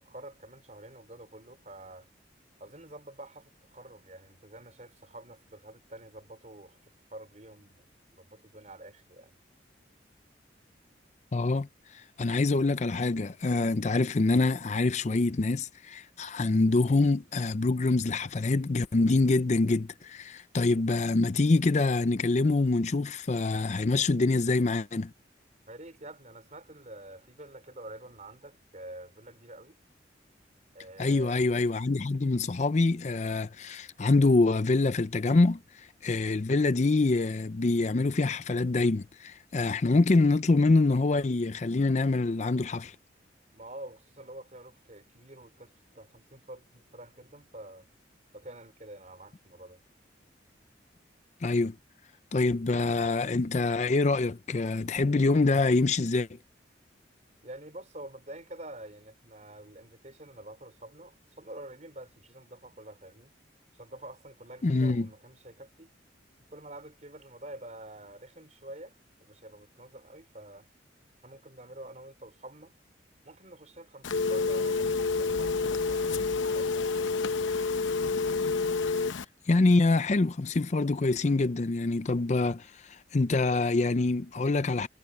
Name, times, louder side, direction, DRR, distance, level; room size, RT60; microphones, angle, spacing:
voice 1, 0.0-2.1 2.6-6.8 7.1-7.9 8.1-9.3 25.7-29.8 30.7-31.3 43.5-47.9 48.3-49.8 57.4-63.3 63.7-65.9 66.5-70.7 71.2-72.7 73.2-77.1, right 1 dB, 40° right, 4.9 m, -47 dB
voice 2, 11.3-25.1 31.0-43.0 51.4-51.8 52.3-56.4 64.6-65.1 79.5-84.9, left 3 dB, 40° left, 0.5 m, -25 dB
Telephone, 74.0-79.2, left 4 dB, 90° left, 0.8 m, -28 dB
head